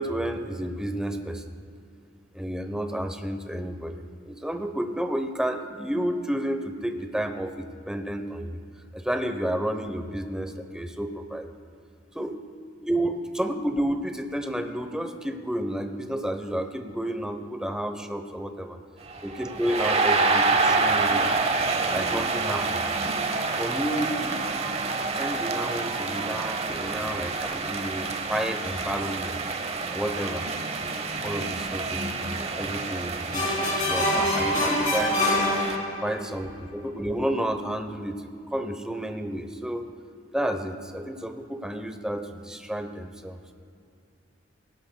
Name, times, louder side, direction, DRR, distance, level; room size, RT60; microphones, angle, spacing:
voice 1, 0.0-1.4 2.3-8.6 8.9-11.5 12.1-12.4 12.8-18.8 19.2-21.2 21.9-22.9 23.6-24.4 25.0-29.4 29.9-30.5 31.2-35.4 36.0-39.9 40.3-43.5, right 1 dB, 5° right, 6 dB, 0.9 m, -31 dB
sound 1, 19.1-35.8, right 3 dB, 35° right, 0.8 m, -28 dB
sound 2, 33.3-36.3, left 1 dB, 45° left, 3.0 m, -25 dB
20.0 x 17.5 x 2.3 m, 2.4 s
head